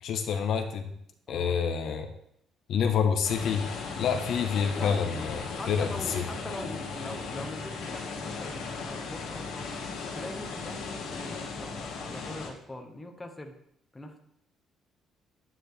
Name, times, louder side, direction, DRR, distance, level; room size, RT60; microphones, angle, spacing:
voice 1, 0.0-0.9 1.3-2.1 2.7-3.7 4.0-6.2, left 7 dB, 60° left, 5 dB, 1.1 m, -28 dB
sound 1, 3.2-12.5, left 4 dB, 85° left, 2.3 m, -37 dB
voice 2, 4.7-9.7 10.1-13.5 13.9-14.2, left 1 dB, 10° left, 3 dB, 1.1 m, -42 dB
9.8 x 9.3 x 3.4 m, 0.73 s
cardioid pair, 145°, 0 cm